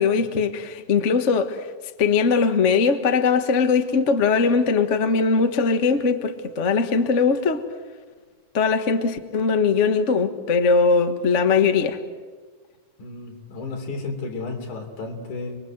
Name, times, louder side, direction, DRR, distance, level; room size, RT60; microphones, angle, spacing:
voice 1, 0.0-1.7 2.0-7.6 8.5-12.0, left 5 dB, 50° left, 0.9 m, -20 dB
voice 2, 13.0-15.6, left 3 dB, 70° left, 4.7 m, -32 dB
30.0 x 22.0 x 7.9 m
omnidirectional pair, 3.6 m